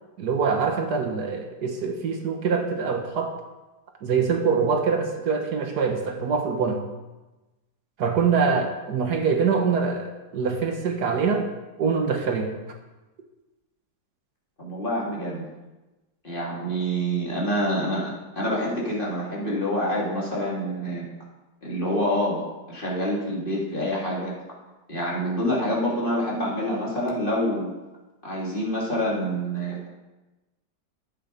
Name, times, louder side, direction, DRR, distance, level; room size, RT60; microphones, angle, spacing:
voice 1, 0.2-3.4 4.0-6.8 8.0-11.5 11.8-12.5, right 5 dB, 65° right, 4 dB, 1.7 m, -24 dB
voice 2, 14.6-15.4 16.2-21.1 21.6-24.3 24.9-27.7 28.2-29.9, equal, 30° left, -6 dB, 3.4 m, -27 dB
12.0 x 9.4 x 5.3 m, 1.1 s
omnidirectional pair, 1.9 m